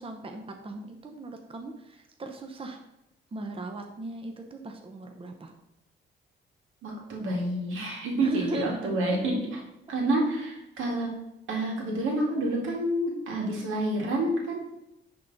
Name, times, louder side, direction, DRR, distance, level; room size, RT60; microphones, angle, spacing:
voice 1, 0.0-2.8 3.3-5.5 8.2-9.0, right 2 dB, 25° right, 4 dB, 0.8 m, -38 dB
voice 2, 6.8-9.6 9.9-11.1 11.5-14.6, right 1 dB, 85° right, -1 dB, 2.1 m, -28 dB
10.0 x 3.8 x 4.0 m, 0.88 s
cardioid pair, 90°, 20 cm